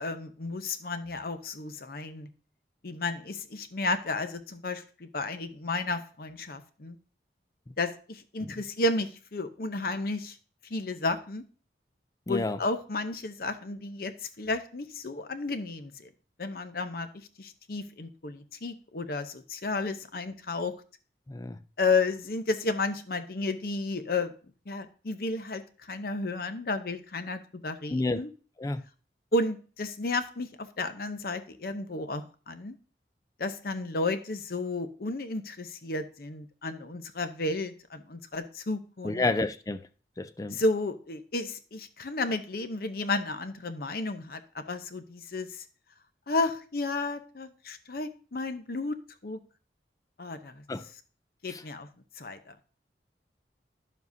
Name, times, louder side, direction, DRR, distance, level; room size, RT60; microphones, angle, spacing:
voice 1, 0.0-2.3 2.8-7.0 7.8-10.4 10.7-11.4 12.3-16.1 16.4-17.1 17.4-20.7 21.8-24.3 24.7-28.3 29.3-32.7 33.4-39.2 40.5-45.6 46.3-49.0 49.2-49.4 50.2-50.6 51.4-51.9 52.2-52.6, left 3 dB, 55° left, 0.7 m, -32 dB
voice 2, 12.3-12.6 21.3-21.6 27.9-28.2 28.6-28.8 39.0-39.8 40.2-40.6 50.7-50.9 51.5-51.6, left 2 dB, 20° left, 0.4 m, -30 dB
11.0 x 7.2 x 2.7 m
head